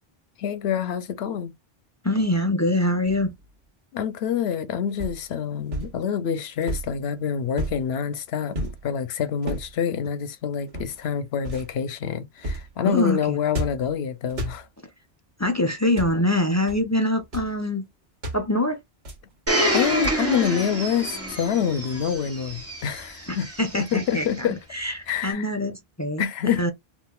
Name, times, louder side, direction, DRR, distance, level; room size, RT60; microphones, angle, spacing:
voice 1, 0.4-1.5 3.9-14.7 19.7-23.5 23.7-24.6 25.1-25.5 26.2-26.7, left 8 dB, 90° left, 0.9 m, -26 dB
voice 2, 2.0-3.3 12.8-13.4 15.4-17.9 18.3-18.8 23.3-24.5 24.7-26.7, left 1 dB, 25° left, 0.4 m, -24 dB
sound 1, 3.0-3.5 5.0-5.3 5.7-6.0 6.6-7.0 7.6-7.9 8.6-8.9 9.4-9.7 10.7-11.1 11.4-11.7 12.4-12.7 13.5-13.9 14.3-14.6 15.8-16.2 16.7-16.8 17.2-17.5 18.2-18.5 19.0-19.3 20.0-20.4, right 1 dB, 80° right, 1.4 m, -32 dB
Domestic sounds home sounds, 19.5-24.3 25.1-25.2, equal, 15° right, 0.7 m, -28 dB
3.6 x 2.5 x 2.3 m
omnidirectional pair, 1.0 m